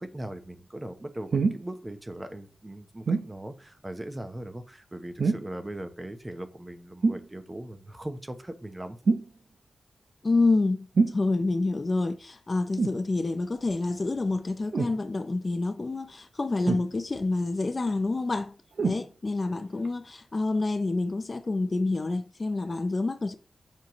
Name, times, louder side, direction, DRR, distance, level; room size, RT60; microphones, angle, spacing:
voice 1, 0.0-9.0, right 1 dB, 20° right, 0.9 m, -39 dB
sound 1, 1.3-1.7 3.1-3.3 5.2-5.6 7.0-7.3 9.1-9.3 11.0-11.2 12.8-13.0 14.7-15.0 16.7-17.2 18.8-19.0 19.9-20.0, right 4 dB, 65° right, 0.8 m, -25 dB
voice 2, 10.2-10.9 11.1-18.5 18.8-23.4, left 3 dB, 35° left, 0.5 m, -28 dB
7.4 x 5.3 x 3.1 m
wide cardioid pair, 115°, 0 cm